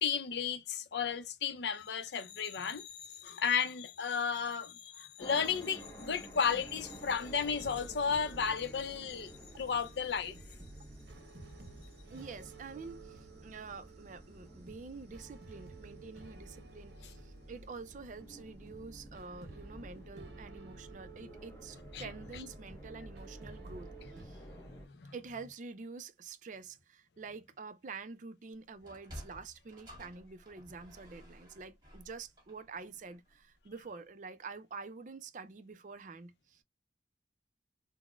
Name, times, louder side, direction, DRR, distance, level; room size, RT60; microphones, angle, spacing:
voice 1, 0.0-10.4 21.9-22.1 22.3-22.4 24.3-25.1, left 6 dB, 70° left, 0.5 m, -34 dB
sound 1, 5.2-24.9, equal, 15° left, 0.7 m, -52 dB
sound 2, 5.3-24.3, right 3 dB, 65° right, 0.7 m, -54 dB
voice 2, 12.1-23.9 24.2-24.4 25.1-36.6, right 4 dB, 45° right, 0.4 m, -47 dB
Sliding door, 28.7-33.4, equal, 25° right, 1.5 m, -53 dB
4.0 x 2.0 x 2.2 m
head